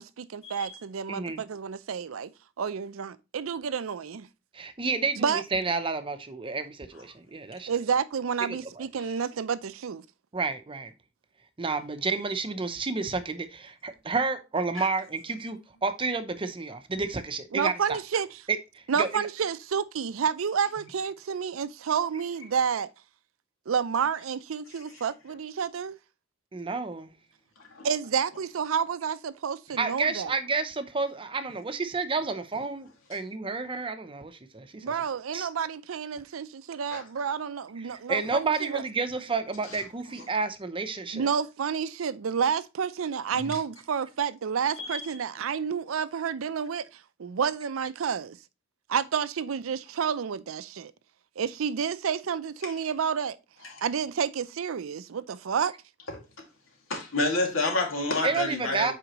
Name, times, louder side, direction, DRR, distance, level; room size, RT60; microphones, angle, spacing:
voice 1, 0.0-2.3 2.6-4.3 5.2-5.4 7.7-10.0 17.5-18.3 18.9-22.9 23.7-26.0 27.8-30.3 34.8-38.8 41.1-48.4 48.9-50.9 51.4-53.4 53.8-55.7, right 7 dB, 90° right, 0.5 m, -30 dB
voice 2, 1.1-1.4 4.5-7.7 8.4-8.9 10.3-10.9 11.6-18.0 18.7-19.1 20.8-20.9 26.5-27.1 29.8-34.8 35.3-35.5 37.8-41.3 58.2-58.9, right 4 dB, 25° right, 0.6 m, -30 dB
voice 3, 44.8-45.1 52.6-52.7 53.7-53.8 56.1-56.2 56.9-58.9, left 2 dB, 80° left, 2.1 m, -29 dB
7.9 x 4.9 x 3.0 m
head